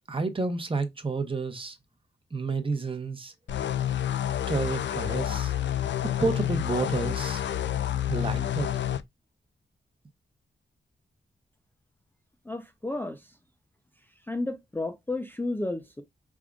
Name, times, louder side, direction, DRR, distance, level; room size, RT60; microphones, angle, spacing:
voice 1, 0.1-1.8 2.3-3.3 4.5-5.5 6.0-7.5 8.1-8.7, right 3 dB, 30° right, 0.8 m, -30 dB
sound 1, 3.5-9.0, left 11 dB, 75° left, 0.4 m, -29 dB
voice 2, 12.5-13.2 14.3-16.0, left 2 dB, 10° left, 0.4 m, -32 dB
4.8 x 3.5 x 2.4 m
wide cardioid pair, 115°, 19 cm